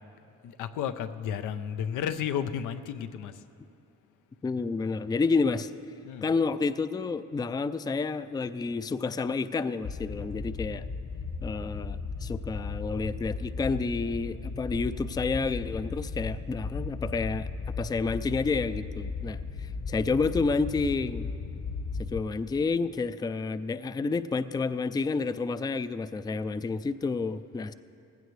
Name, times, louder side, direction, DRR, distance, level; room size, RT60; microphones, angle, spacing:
voice 1, 0.4-3.4 6.0-6.3, left 8 dB, 90° left, 10 dB, 0.7 m, -33 dB
voice 2, 4.4-5.7 6.2-10.8 11.4-17.5 17.8-21.3 22.1-27.7, left 4 dB, 15° left, 13 dB, 0.3 m, -30 dB
sound 1, 9.8-22.2, left 4 dB, 45° left, 1.3 m, -36 dB
18.0 x 16.0 x 3.2 m, 2.7 s
cardioid pair, 90°, 30 cm